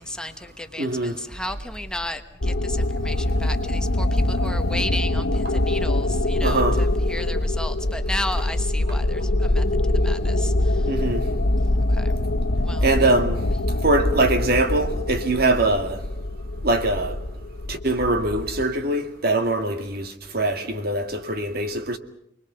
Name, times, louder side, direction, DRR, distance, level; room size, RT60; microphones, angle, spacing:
voice 1, 0.0-10.9 11.9-12.1 12.6-12.9, left 1 dB, 5° left, 1.2 m, -34 dB
voice 2, 0.8-1.1 6.4-6.9 10.9-11.2 12.8-13.4 13.8-16.0 16.6-17.2 17.7-22.0, right 2 dB, 55° right, 2.1 m, -22 dB
sound 1, 2.4-18.6, left 1 dB, 85° left, 1.1 m, -24 dB
28.5 x 21.5 x 6.9 m
head